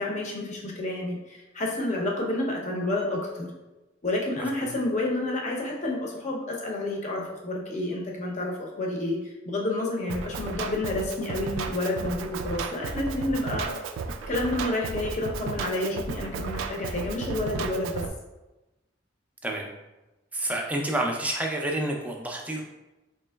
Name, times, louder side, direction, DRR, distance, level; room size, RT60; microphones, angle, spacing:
voice 1, 0.0-3.5 4.0-13.8 14.3-18.0, left 2 dB, 35° left, -1 dB, 0.6 m, -29 dB
voice 2, 4.4-4.7 19.4-19.7 20.3-22.6, right 1 dB, 10° right, 0 dB, 0.4 m, -29 dB
Drum kit, 10.1-18.1, right 4 dB, 80° right, 0.3 m, -34 dB
4.4 x 3.0 x 2.2 m, 1.0 s
head